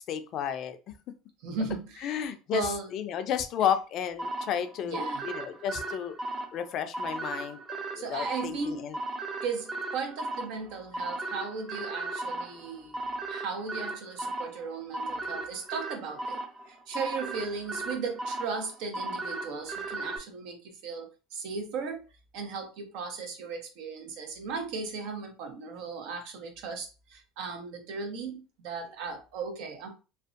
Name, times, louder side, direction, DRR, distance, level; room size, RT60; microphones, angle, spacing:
voice 1, 0.1-0.8 2.0-6.2 6.5-7.6 7.9-9.0, left 9 dB, 50° left, 9 dB, 0.4 m, -32 dB
voice 2, 1.4-2.2 2.5-2.9 4.8-5.3 7.9-8.9 9.4-13.0 13.3-16.4 16.7-22.1 22.3-29.9, right 4 dB, 70° right, 5 dB, 0.7 m, -36 dB
sound 1, 4.2-20.2, right 2 dB, 15° right, 0.5 m, -37 dB
2.5 x 2.1 x 2.4 m, 0.31 s
supercardioid pair, 100°, 0 cm